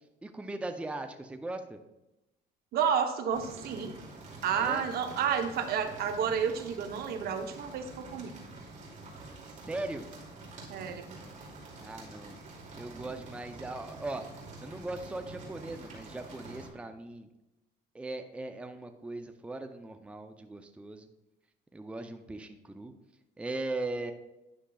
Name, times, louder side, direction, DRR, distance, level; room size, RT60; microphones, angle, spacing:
voice 1, 0.2-1.8 4.6-4.8 9.6-10.1 11.8-12.4 12.7-17.3 17.9-21.1 21.7-22.9 23.4-24.1, right 2 dB, 5° right, 7 dB, 0.5 m, -39 dB
voice 2, 2.7-3.9 4.4-8.3 10.7-11.1, right 7 dB, 65° right, 7 dB, 0.8 m, -30 dB
sound 1, 3.3-16.7, right 2 dB, 45° right, 2.4 m, -47 dB
10.0 x 6.2 x 2.3 m, 0.93 s
cardioid pair, 110°, 17 cm